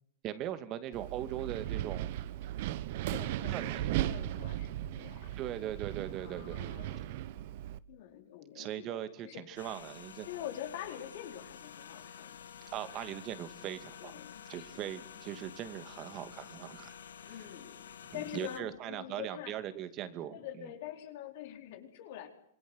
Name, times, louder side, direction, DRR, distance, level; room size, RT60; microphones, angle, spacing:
voice 1, 0.2-2.1 3.5-3.9 5.4-6.6 8.5-10.3 12.6-14.2 14.5-17.0 17.2-17.3 18.1-20.7, right 11 dB, 40° right, 11 dB, 2.4 m, -40 dB
Wind, 0.9-7.8, right 14 dB, 60° right, 1.0 m, -37 dB
voice 2, 3.0-5.4 6.1-7.4 7.9-9.5 10.3-12.5 12.9-13.1 14.0-14.9 17.3-19.5 20.3-22.3, left 11 dB, 65° left, 5 dB, 4.6 m, -45 dB
sound 1, 9.6-18.6, left 8 dB, 85° left, 1.9 m, -50 dB
26.5 x 21.0 x 8.1 m, 0.69 s
hypercardioid pair, 125°, 0 cm